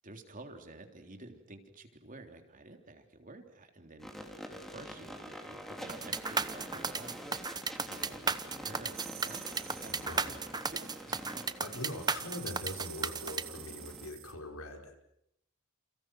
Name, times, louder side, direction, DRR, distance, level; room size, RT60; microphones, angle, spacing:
voice 1, 0.0-7.6 7.9-9.5 9.8-9.9 10.7-11.5, right 2 dB, 40° right, 5 dB, 3.6 m, -51 dB
sound 1, 4.0-14.1, equal, ahead, 3.7 m, -46 dB
sound 2, 5.9-13.4, right 4 dB, 20° right, 1.0 m, -34 dB
sound 3, 8.9-10.4 11.7-14.3, right 13 dB, 80° right, 3.1 m, -48 dB
voice 2, 9.9-10.4 11.6-14.9, left 1 dB, 90° left, 4 dB, 5.4 m, -42 dB
30.0 x 29.5 x 6.2 m, 0.78 s
head